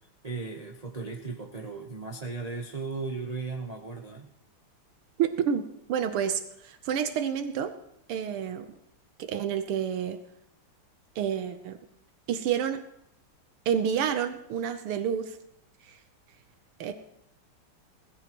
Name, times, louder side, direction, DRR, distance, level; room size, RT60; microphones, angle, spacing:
voice 1, 0.2-4.3, right 4 dB, 65° right, 2 dB, 0.3 m, -36 dB
voice 2, 5.2-5.6 5.9-7.7 8.1-8.7 9.2-10.2 11.2-11.8 12.3-12.8 13.7-15.4 15.8-16.0 16.8-16.9, right 8 dB, 85° right, 8 dB, 1.8 m, -29 dB
20.5 x 14.5 x 3.0 m, 0.76 s
omnidirectional pair, 2.4 m